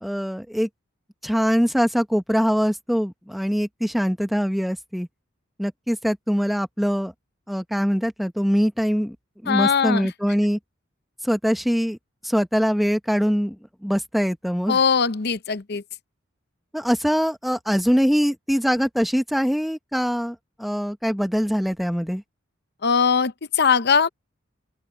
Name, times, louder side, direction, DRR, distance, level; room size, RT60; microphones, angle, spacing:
voice 1, 0.0-0.7 1.2-5.1 5.6-7.1 7.5-9.2 9.4-10.6 11.2-12.0 12.2-13.6 13.8-14.8 16.7-22.2, equal, ahead, 1.0 m, -23 dB
voice 2, 9.5-10.1 14.7-15.8 22.8-24.1, left 6 dB, 55° left, 0.8 m, -20 dB
open air
head